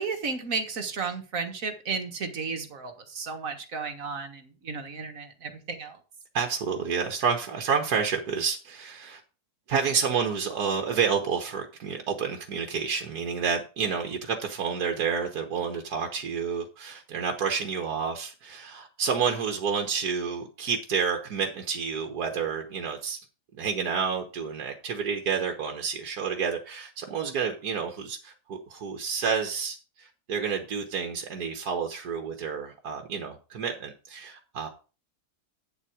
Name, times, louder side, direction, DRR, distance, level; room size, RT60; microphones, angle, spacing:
voice 1, 0.0-6.0, right 4 dB, 60° right, 1.9 m, -33 dB
voice 2, 6.3-9.2 9.7-23.2 23.5-34.7, right 6 dB, 75° right, 1.7 m, -29 dB
9.6 x 7.3 x 4.9 m
omnidirectional pair, 1.7 m